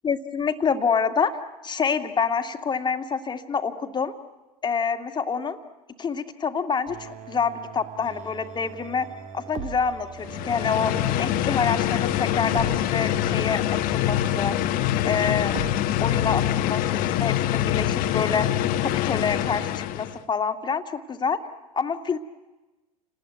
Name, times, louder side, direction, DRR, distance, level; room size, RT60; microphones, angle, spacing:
voice 1, 0.0-1.4 1.6-4.1 4.6-5.6 6.0-9.1 9.3-10.9 11.2-14.6 15.0-15.6 16.0-18.5 18.8-21.4 21.7-22.2, left 6 dB, 25° left, 8 dB, 2.1 m, -27 dB
sound 1, 6.9-15.8, right 8 dB, 45° right, 2.0 m, -41 dB
sound 2, 10.2-20.2, left 12 dB, 50° left, 1.4 m, -25 dB
29.5 x 19.5 x 9.4 m, 1.1 s
hypercardioid pair, 85°, 18 cm